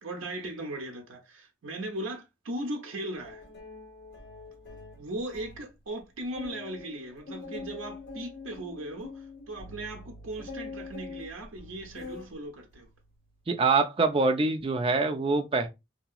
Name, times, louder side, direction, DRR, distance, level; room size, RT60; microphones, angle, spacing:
voice 1, 0.0-3.4 5.0-12.9, right 1 dB, 85° right, 0.7 m, -38 dB
sound 1, 3.3-5.6 6.0-6.1 6.4-12.3 12.7-13.1, left 3 dB, 55° left, 1.4 m, -44 dB
voice 2, 13.5-15.7, right 3 dB, 25° right, 0.4 m, -25 dB
2.8 x 2.8 x 2.3 m
head